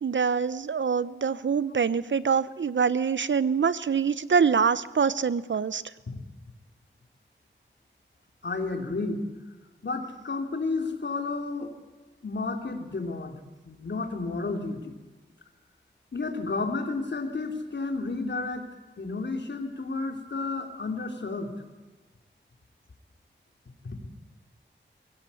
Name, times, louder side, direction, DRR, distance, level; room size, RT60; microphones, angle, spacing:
voice 1, 0.0-5.8, right 6 dB, 70° right, 17 dB, 0.8 m, -25 dB
voice 2, 8.4-9.2 9.8-11.7 12.2-13.4 13.6-15.0 16.1-18.7 19.0-21.5, left 3 dB, 60° left, 5 dB, 3.1 m, -31 dB
23.0 x 16.0 x 8.4 m, 1.3 s
wide cardioid pair, 95°, 20 cm